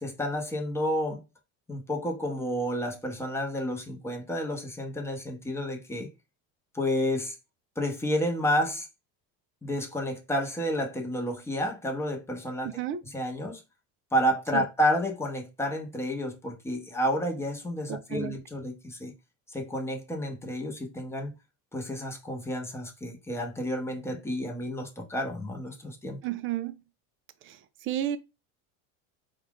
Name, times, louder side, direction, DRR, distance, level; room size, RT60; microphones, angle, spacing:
voice 1, 0.0-1.2 1.7-6.1 6.7-7.4 7.8-8.9 9.6-12.8 13.1-13.6 14.1-19.1 19.5-21.3 21.7-26.2, equal, 5° left, 0.9 m, -30 dB
voice 2, 12.6-13.0 14.5-14.6 17.9-18.4 26.2-26.8 27.4-28.2, right 11 dB, 35° right, 0.4 m, -32 dB
4.2 x 2.4 x 3.6 m
supercardioid pair, 130°, 39 cm